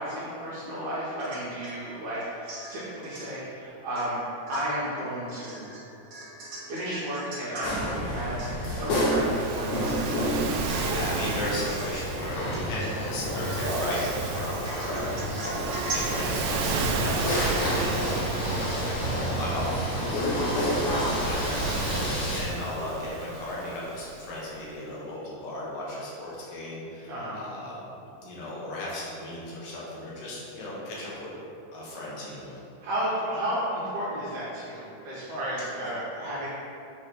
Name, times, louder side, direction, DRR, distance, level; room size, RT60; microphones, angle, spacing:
voice 1, 0.0-4.2 4.5-5.7 6.7-10.1 27.1-27.4 32.8-36.5, right 1 dB, 65° right, -10 dB, 2.2 m, -33 dB
Domestic sounds home sounds / Chink clink / Drip, 1.2-1.8 2.1-3.3 3.9-4.2 4.5-7.7 8.1-8.2 8.4-8.9 9.3-9.4 9.9-10.3 10.6-11.0 11.2-12.0 12.5-13.3 13.7-14.3 14.6-18.0 18.2-18.3, right 1 dB, 50° right, 1.6 m, -40 dB
sound 1, 7.6-22.4, equal, 65° left, 2.5 m, -29 dB
Waves surf, 8.9-24.4, right 4 dB, 90° right, 1.6 m, -34 dB
voice 2, 10.6-15.5 15.9-27.8 28.2-31.3 31.7-32.5 35.8-35.9, left 1 dB, 85° left, -6 dB, 3.0 m, -36 dB
7.5 x 3.3 x 4.5 m, 2.7 s
omnidirectional pair, 3.8 m